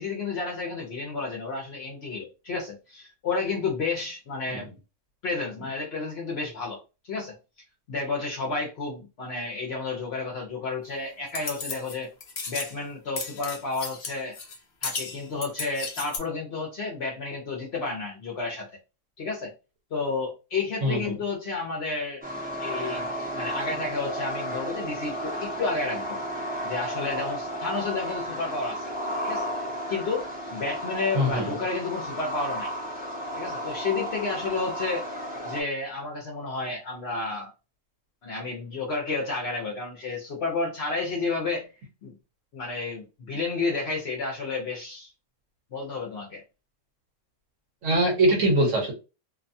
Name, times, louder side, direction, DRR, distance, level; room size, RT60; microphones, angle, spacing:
voice 1, 0.0-4.7 5.2-6.8 7.0-7.4 7.9-12.1 12.5-14.4 14.8-18.7 19.2-19.5 19.9-22.2 22.6-26.2 26.6-28.9 29.2-29.5 29.9-32.7 33.4-35.1 35.4-37.5 38.2-41.7 42.0-42.2 42.5-45.1 45.7-46.4, left 3 dB, 55° left, 0.8 m, -31 dB
sound 1, 11.3-12.0 12.2-12.7 13.2-14.6 14.8-16.2, left 4 dB, 80° left, 0.4 m, -34 dB
voice 2, 20.8-21.2 31.1-31.6 47.8-48.9, right 1 dB, 60° right, 1.3 m, -23 dB
sound 2, 22.2-35.6, equal, 15° right, 0.3 m, -33 dB
2.6 x 2.2 x 2.6 m
omnidirectional pair, 1.6 m